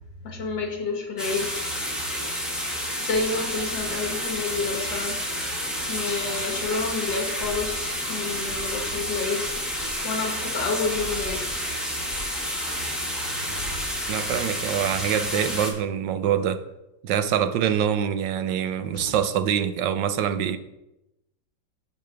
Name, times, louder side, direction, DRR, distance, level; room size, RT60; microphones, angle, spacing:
voice 1, 0.2-1.7 3.0-5.2 5.9-9.5 10.0-11.6 18.9-19.1, left 4 dB, 85° left, 2 dB, 2.2 m, -29 dB
sound 1, 1.2-15.7, equal, ahead, 1.5 m, -30 dB
sound 2, 3.0-5.3 5.7-10.3 10.7-13.0 13.4-14.3, equal, 40° right, 0.5 m, -44 dB
voice 2, 14.1-16.6 17.0-20.6, right 9 dB, 80° right, 11 dB, 1.4 m, -25 dB
14.5 x 5.3 x 3.4 m, 0.91 s
omnidirectional pair, 1.9 m